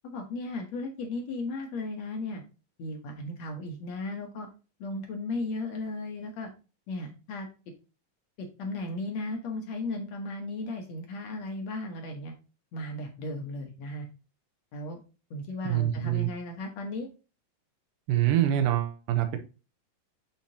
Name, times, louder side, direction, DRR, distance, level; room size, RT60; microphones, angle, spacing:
voice 1, 0.0-2.4 2.8-4.5 4.8-6.5 6.9-7.5 8.6-12.3 12.7-14.1 14.7-15.0 15.3-17.1, left 2 dB, 65° left, 3 dB, 1.9 m, -35 dB
voice 2, 15.7-16.3 18.1-19.4, right 12 dB, 80° right, 6 dB, 2.4 m, -25 dB
7.3 x 5.8 x 2.7 m, 0.32 s
omnidirectional pair, 4.2 m